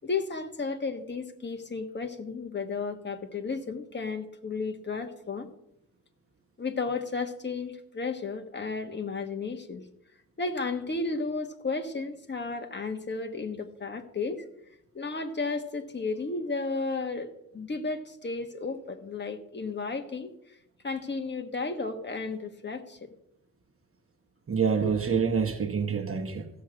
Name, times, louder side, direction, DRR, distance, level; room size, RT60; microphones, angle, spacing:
voice 1, 0.0-5.5 6.6-9.8 10.4-14.4 14.9-20.6 20.8-23.1, left 4 dB, 30° left, 1.3 m, -33 dB
voice 2, 24.5-26.5, right 6 dB, 40° right, 1.0 m, -27 dB
15.0 x 6.4 x 7.6 m
wide cardioid pair, 170°, 34 cm